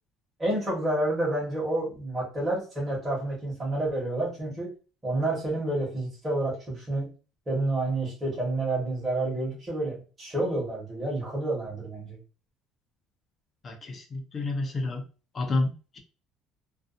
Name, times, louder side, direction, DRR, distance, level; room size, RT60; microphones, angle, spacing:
voice 1, 0.4-4.7 5.0-7.1 7.5-12.2, right 2 dB, 15° right, -6 dB, 1.1 m, -29 dB
voice 2, 13.6-15.0 15.3-16.0, left 2 dB, 25° left, 4 dB, 0.4 m, -30 dB
2.5 x 2.2 x 2.4 m, 0.34 s
cardioid pair, 170°, 0 cm